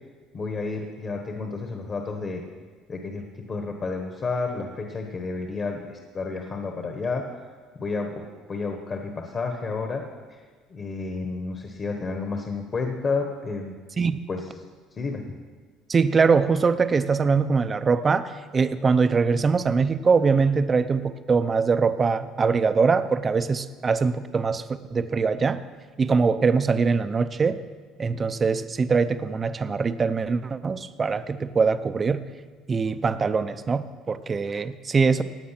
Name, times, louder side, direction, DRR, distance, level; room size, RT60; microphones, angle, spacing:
voice 1, 0.3-2.4 2.9-7.2 7.8-8.2 8.5-10.0 10.3-10.4 10.7-13.7 14.3-14.4 14.9-15.4, left 4 dB, 25° left, 3 dB, 1.2 m, -31 dB
voice 2, 15.9-24.6 24.9-25.6 26.0-27.6 28.0-32.2 32.7-35.2, right 5 dB, 20° right, 12 dB, 0.5 m, -22 dB
16.0 x 9.4 x 5.8 m, 1.5 s
cardioid pair, 160°, 0 cm